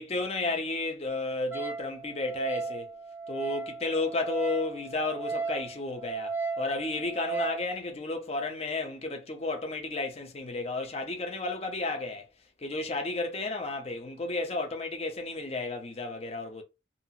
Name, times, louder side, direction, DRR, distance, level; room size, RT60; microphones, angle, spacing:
voice 1, 0.0-2.9 3.3-12.3 12.6-16.6, left 2 dB, 35° left, 0.6 m, -32 dB
Wind instrument woodwind instrument, 1.5-7.7, right 4 dB, 10° right, 0.5 m, -36 dB
2.6 x 2.4 x 2.7 m
head